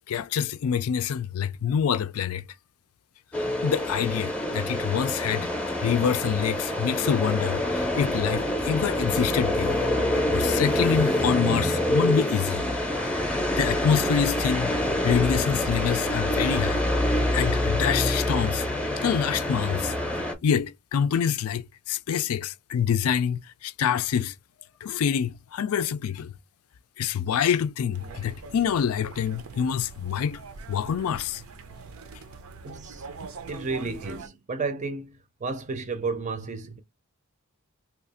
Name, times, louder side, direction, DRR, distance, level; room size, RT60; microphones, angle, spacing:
voice 1, 0.1-2.4 3.4-5.5 5.8-9.8 10.3-12.6 13.6-14.7 15.0-18.7 19.0-19.9 20.4-24.3 24.8-26.3 27.0-30.4 30.7-31.4, left 7 dB, 75° left, 0.4 m, -26 dB
sound 1, 3.3-20.3, left 1 dB, 5° left, 0.6 m, -26 dB
sound 2, 27.9-34.3, right 4 dB, 75° right, 0.6 m, -43 dB
voice 2, 32.6-33.1 33.5-36.8, right 4 dB, 35° right, 0.5 m, -32 dB
2.9 x 2.4 x 4.2 m
head